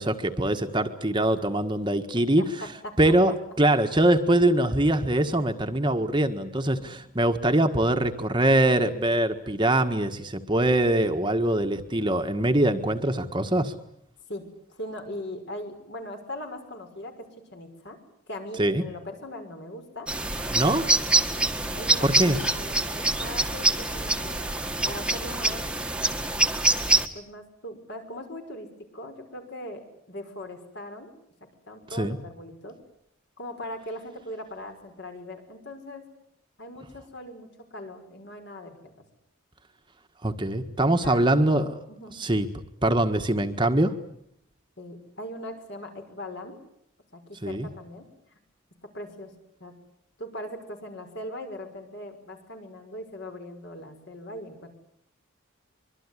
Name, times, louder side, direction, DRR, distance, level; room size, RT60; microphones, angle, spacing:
voice 1, 0.0-2.5 3.0-13.7 18.6-18.8 20.5-20.9 22.0-22.4 31.9-32.2 40.2-41.7 42.2-42.5 42.8-43.9 47.4-47.7, right 1 dB, 20° right, 6 dB, 1.5 m, -23 dB
voice 2, 6.6-7.2 14.3-17.3 17.5-18.0 18.3-20.1 21.1-21.3 21.7-22.1 22.5-24.5 24.8-25.7 27.1-31.1 31.4-32.8 33.4-36.0 36.6-38.8 40.8-42.2 44.8-46.6 47.1-48.1 48.3-48.4 48.9-49.3 49.6-49.7 50.2-54.7, left 1 dB, 55° left, 5 dB, 6.0 m, -40 dB
sound 1, 20.1-27.1, right 2 dB, 5° right, 1.6 m, -25 dB
24.5 x 23.5 x 9.9 m, 0.73 s
head